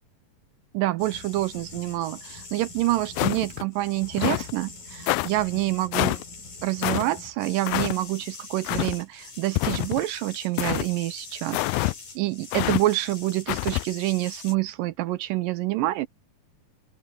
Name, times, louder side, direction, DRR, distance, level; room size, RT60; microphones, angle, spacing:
voice 1, 0.7-6.2 6.6-16.1, right 17 dB, 80° right, 2.2 m, -27 dB
sound 1, 1.0-14.5, left 3 dB, 60° left, 9.1 m, -43 dB
sound 2, 3.2-3.6 4.2-4.5 5.1-5.3 5.9-6.2 6.8-7.0 7.7-7.9 8.6-9.0 9.6-10.0 10.6-10.9 11.5-11.9 12.5-12.8 13.5-13.8, left 21 dB, 85° left, 2.4 m, -26 dB
open air
omnidirectional pair, 4.2 m